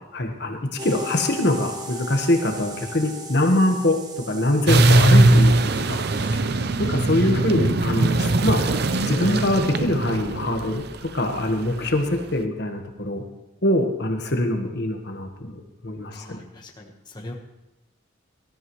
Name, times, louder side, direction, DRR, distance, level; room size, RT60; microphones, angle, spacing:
voice 1, 0.1-4.0 4.3-5.5 5.9-6.0 6.8-8.7 9.1-13.2 13.6-16.4, left 1 dB, 60° left, 4 dB, 1.4 m, -23 dB
sound 1, 0.8-6.4, equal, 20° right, 1.3 m, -37 dB
sound 2, 4.7-12.0, right 2 dB, 55° right, 0.6 m, -20 dB
voice 2, 16.1-17.3, left 1 dB, 25° left, 1 dB, 1.4 m, -40 dB
19.0 x 13.0 x 3.2 m, 0.92 s
head